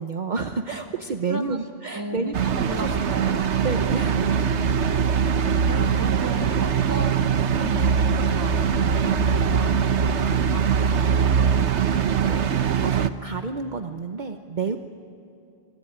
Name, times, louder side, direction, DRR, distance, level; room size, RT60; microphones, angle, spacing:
voice 1, 0.0-2.9 3.2-4.2 12.0-12.5 12.8-14.8, right 4 dB, 45° right, 6 dB, 1.0 m, -30 dB
voice 2, 1.3-1.6 1.9-3.4 5.7-12.5 14.6-14.8, right 2 dB, 20° right, 6 dB, 1.5 m, -37 dB
sound 1, 2.3-13.1, right 7 dB, 85° right, 1.3 m, -22 dB
25.5 x 21.5 x 10.0 m, 2.6 s
omnidirectional pair, 1.1 m